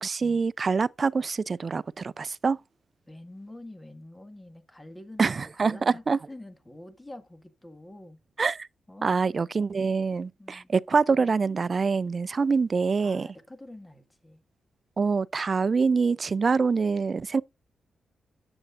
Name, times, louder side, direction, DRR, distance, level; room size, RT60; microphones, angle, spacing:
voice 1, 0.0-2.6 5.2-6.2 8.4-8.7 9.0-13.3 15.0-17.4, right 5 dB, 45° right, 0.4 m, -25 dB
voice 2, 3.1-8.2 8.9-9.1 10.4-10.7 13.0-14.4, left 1 dB, 15° left, 1.8 m, -46 dB
10.5 x 8.0 x 2.5 m
cardioid pair, 75°, 0 cm